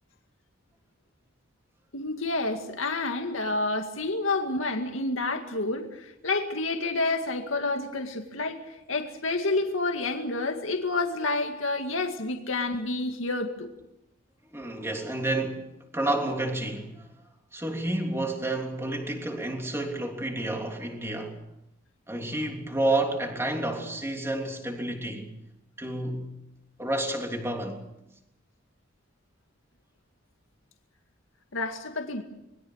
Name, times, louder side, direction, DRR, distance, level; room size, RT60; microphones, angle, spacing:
voice 1, 1.9-8.6 8.9-13.7 31.5-32.2, left 2 dB, 85° left, 2.2 m, -29 dB
voice 2, 14.5-15.6 15.9-17.1 17.5-21.4 22.1-25.3 25.8-26.3 26.8-27.8, right 1 dB, 15° right, 3.2 m, -30 dB
26.5 x 21.5 x 6.5 m
head